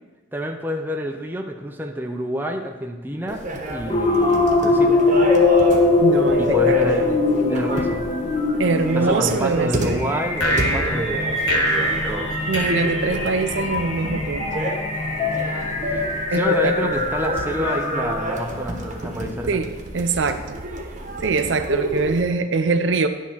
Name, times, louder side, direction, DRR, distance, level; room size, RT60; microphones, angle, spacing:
voice 1, 0.3-3.4 3.7-5.0 6.4-7.2 7.5-8.0 8.9-11.4 11.9-12.3 15.9-16.0 16.3-19.6, equal, 10° right, 2 dB, 0.5 m, -28 dB
sound 1, 3.3-22.2, right 1 dB, 40° right, 1.1 m, -30 dB
sound 2, 3.9-18.5, left 3 dB, 30° left, 1.0 m, -22 dB
voice 2, 6.0-7.1 8.6-10.0 12.5-14.6 16.3-16.9 19.5-19.7 19.9-20.6 21.2-23.1, right 4 dB, 70° right, 8 dB, 0.5 m, -23 dB
sound 3, 10.4-13.8, right 1 dB, 85° left, 1.2 m, -25 dB
10.5 x 3.7 x 5.6 m, 1.2 s
head